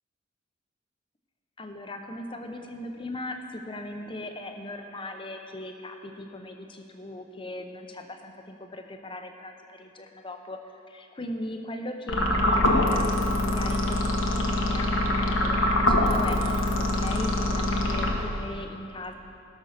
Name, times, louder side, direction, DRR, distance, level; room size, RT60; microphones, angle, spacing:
voice 1, 1.6-10.6 10.9-19.1, left 1 dB, 25° left, 5 dB, 0.8 m, -39 dB
sound 1, 12.1-18.6, left 1 dB, 75° left, 1.2 m, -24 dB
17.0 x 6.3 x 6.6 m, 2.6 s
head